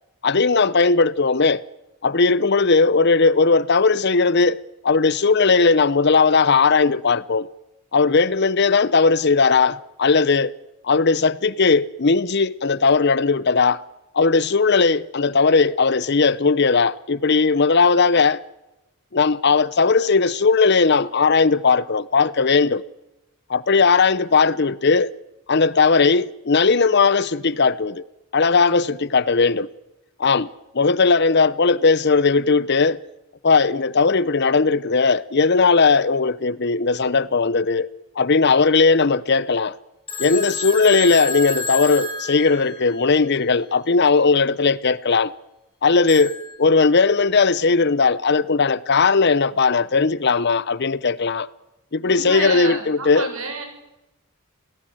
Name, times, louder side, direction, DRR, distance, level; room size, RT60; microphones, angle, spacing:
voice 1, 0.2-1.6 2.0-7.5 7.9-10.5 10.8-13.8 14.1-18.4 19.1-22.8 23.5-25.1 25.5-28.0 28.3-29.7 30.2-30.5 30.7-33.0 33.4-37.9 38.2-39.7 40.2-45.3 45.8-51.5 51.9-53.3, left 4 dB, 50° left, 0.8 m, -18 dB
Telephone, 40.1-43.1 46.1-46.5, left 3 dB, 25° left, 6.2 m, -30 dB
voice 2, 52.0-53.7, right 3 dB, 80° right, 7.1 m, -30 dB
28.5 x 18.0 x 7.8 m
head